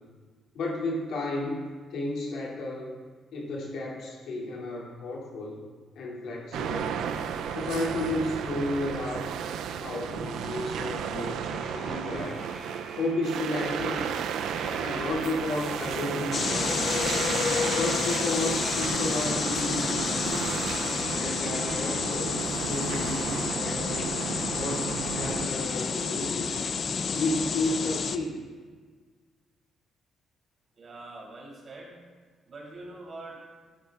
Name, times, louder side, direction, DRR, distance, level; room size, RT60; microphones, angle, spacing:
voice 1, 0.5-1.6 1.9-2.9 3.3-5.6 5.9-7.0 7.5-9.3 9.8-12.4 13.0-14.1 14.8-17.0 17.8-20.6 21.1-26.6 27.1-28.4, left 2 dB, 75° left, -4 dB, 2.7 m, -32 dB
sound 1, 6.5-25.5, right 8 dB, 85° right, 0.5 m, -33 dB
sound 2, 11.4-22.0, equal, 10° left, 2.7 m, -48 dB
sound 3, 16.3-28.2, left 5 dB, 50° left, 0.5 m, -30 dB
voice 2, 30.8-31.9 32.5-33.4, right 2 dB, 45° right, -2 dB, 3.3 m, -43 dB
12.5 x 11.0 x 2.4 m, 1.6 s
cardioid pair, 90°, 0 cm